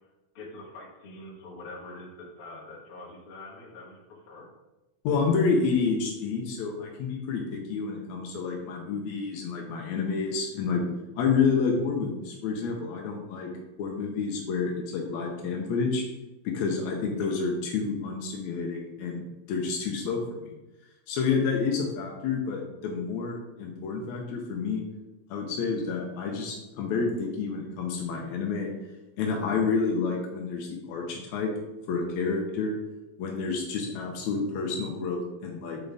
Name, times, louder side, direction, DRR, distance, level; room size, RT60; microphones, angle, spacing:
voice 1, 0.3-4.4 17.2-17.3, left 2 dB, 60° left, -5 dB, 1.5 m, -44 dB
voice 2, 5.0-10.8 11.1-13.5 13.8-16.0 16.4-20.5 21.1-24.8 25.3-28.7 29.2-31.5 31.9-32.8 33.2-35.8, left 5 dB, 90° left, 0 dB, 1.6 m, -29 dB
7.1 x 4.0 x 3.4 m, 1.0 s
omnidirectional pair, 4.2 m